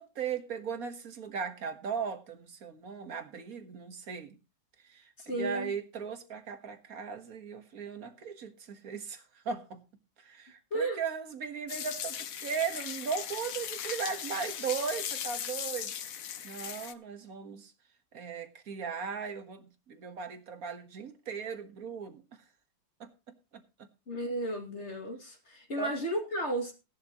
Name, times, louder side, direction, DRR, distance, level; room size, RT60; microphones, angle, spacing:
voice 1, 0.0-4.4 4.8-9.8 10.2-15.9 16.4-17.7 18.1-22.2 23.0-23.6 25.8-25.9, right 6 dB, 55° right, 8 dB, 1.9 m, -38 dB
voice 2, 5.2-5.7 10.7-11.0 24.1-26.7, right 1 dB, 40° left, 1 dB, 2.7 m, -33 dB
sound 1, 11.7-16.9, left 9 dB, 55° left, 1.2 m, -38 dB
16.5 x 11.5 x 3.0 m, 0.29 s
omnidirectional pair, 1.9 m